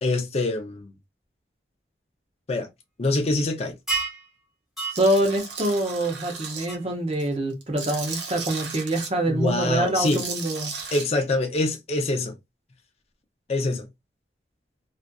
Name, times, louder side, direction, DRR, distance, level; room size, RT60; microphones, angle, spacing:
voice 1, 0.0-0.9 2.5-2.7 3.0-3.7 9.3-10.2 10.9-12.3 13.5-13.9, left 2 dB, 35° left, 0.5 m, -25 dB
sound 1, 3.9-4.2 4.8-5.0 6.7-6.8, right 4 dB, ahead, 0.9 m, -28 dB
voice 2, 4.9-10.7, right 1 dB, 35° right, 0.6 m, -25 dB
Tools, 4.9-6.7 7.1-9.1 9.9-11.0, right 5 dB, 80° right, 0.7 m, -35 dB
2.5 x 2.4 x 2.2 m
head